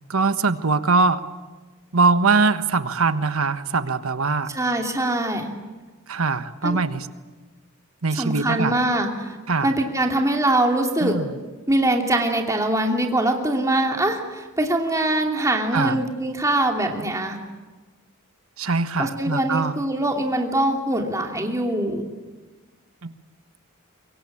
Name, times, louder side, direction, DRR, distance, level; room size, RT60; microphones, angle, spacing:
voice 1, 0.1-1.2 1.9-4.5 6.1-7.1 8.0-8.8 9.5-9.7 11.0-11.3 15.7-16.0 18.6-19.8 23.0-23.1, right 4 dB, 70° right, 11 dB, 1.3 m, -22 dB
voice 2, 4.5-5.5 6.6-6.8 8.2-9.3 9.6-11.2 11.7-17.4 19.0-22.0, right 1 dB, 15° right, 2 dB, 2.8 m, -23 dB
24.5 x 23.5 x 8.7 m, 1.3 s
head